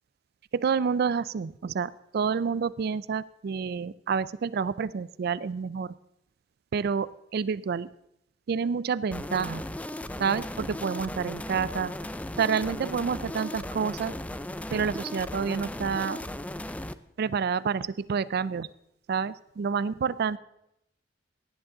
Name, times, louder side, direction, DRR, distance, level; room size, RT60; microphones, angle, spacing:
voice 1, 0.5-5.9 6.7-7.9 8.5-9.6 10.2-11.9 12.4-14.2 14.7-16.2 17.2-18.7 19.1-20.4, right 6 dB, 55° right, 18 dB, 0.4 m, -28 dB
sound 1, 9.1-16.9, left 1 dB, 10° left, 0.4 m, -36 dB
16.5 x 10.5 x 3.8 m, 0.81 s
head